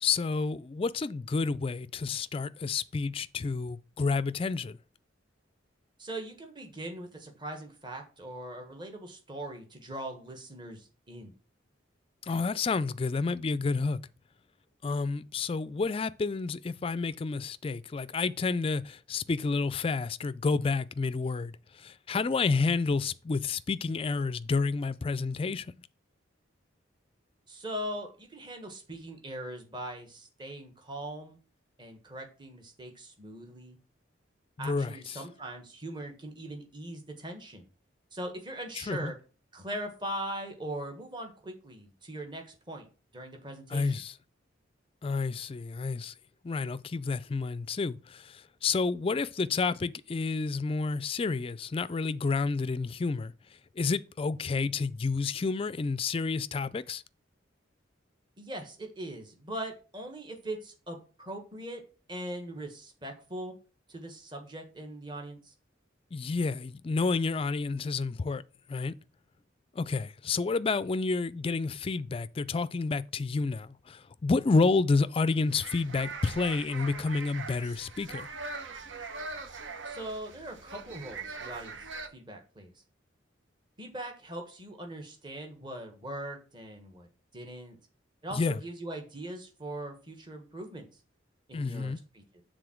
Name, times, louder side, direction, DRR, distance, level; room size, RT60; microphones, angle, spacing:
voice 1, 0.0-4.8 12.2-14.0 14.8-25.7 34.6-35.2 38.8-39.1 43.7-44.1 45.0-46.1 46.4-53.3 53.8-57.0 66.1-68.4 68.7-68.9 69.7-78.3 88.3-88.6 91.5-92.0, left 4 dB, 30° left, 0.3 m, -30 dB
voice 2, 6.0-11.3 27.5-31.4 31.8-33.8 34.6-37.6 38.1-39.1 39.5-42.9 43.1-43.9 58.4-61.8 62.1-63.5 63.9-65.5 79.9-82.7 83.8-87.1 87.3-87.8 88.2-90.9 91.5-92.4, right 1 dB, 25° right, 1.4 m, -41 dB
sound 1, 75.3-82.1, right 4 dB, 80° right, 1.0 m, -41 dB
6.9 x 3.8 x 6.3 m
head